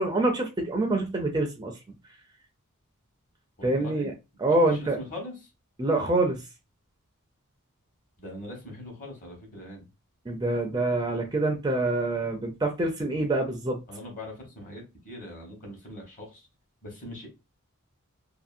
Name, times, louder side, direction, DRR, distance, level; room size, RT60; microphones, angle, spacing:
voice 1, 0.0-1.7 3.6-4.1 4.4-5.0 5.8-6.4 10.3-13.8, right 2 dB, 20° right, 3 dB, 0.4 m, -26 dB
voice 2, 3.6-4.1 4.7-5.3 8.2-9.9 13.9-16.4 16.8-17.3, left 1 dB, 35° left, 1 dB, 1.1 m, -41 dB
2.7 x 2.5 x 2.5 m, 0.26 s
head